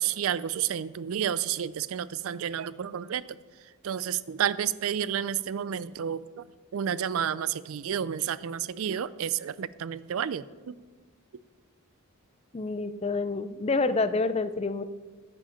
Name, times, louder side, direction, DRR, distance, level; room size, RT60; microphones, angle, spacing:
voice 1, 0.0-6.4 6.7-10.8, right 9 dB, 65° right, 18 dB, 0.4 m, -31 dB
voice 2, 12.5-14.8, left 3 dB, 25° left, 13 dB, 0.4 m, -28 dB
13.5 x 7.7 x 5.7 m, 1.4 s
head